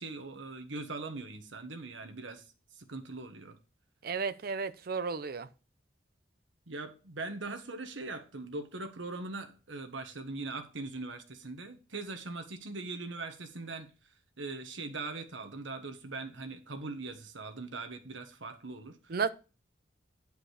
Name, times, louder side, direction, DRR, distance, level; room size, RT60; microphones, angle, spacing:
voice 1, 0.0-2.4 2.8-3.6 6.7-13.9 14.4-19.3, right 3 dB, 90° right, 1.4 m, -41 dB
voice 2, 4.0-5.5 19.1-19.3, right 5 dB, 55° right, 0.6 m, -33 dB
10.0 x 5.1 x 4.9 m
head